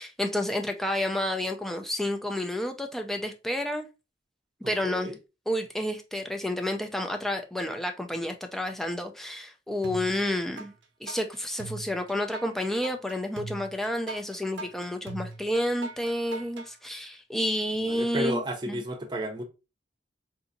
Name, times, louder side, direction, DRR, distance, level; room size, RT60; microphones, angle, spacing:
voice 1, 0.0-3.9 4.7-5.1 5.5-10.7 11.0-18.8, left 1 dB, ahead, 0.4 m, -30 dB
voice 2, 4.6-5.2 17.8-19.4, right 1 dB, 25° right, 0.7 m, -32 dB
sound 1, 9.8-10.7 11.1-16.7, right 3 dB, 90° right, 0.6 m, -40 dB
3.8 x 2.6 x 2.6 m
head